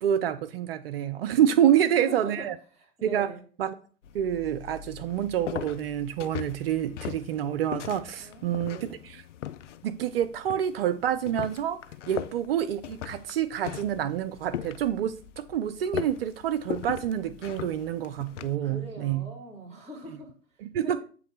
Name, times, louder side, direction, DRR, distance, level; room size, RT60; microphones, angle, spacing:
voice 1, 0.0-2.5 3.0-3.3 3.6-3.7 4.1-8.9 9.8-11.8 12.1-19.3 20.6-21.0, right 10 dB, 50° right, 0.5 m, -27 dB
voice 2, 1.7-3.4 8.2-9.0 12.1-12.3 18.5-21.0, equal, 15° right, 3.4 m, -43 dB
sound 1, 4.0-18.6, left 10 dB, 70° left, 0.5 m, -39 dB
7.8 x 3.1 x 5.2 m
figure-of-eight pair, 100°, 39 cm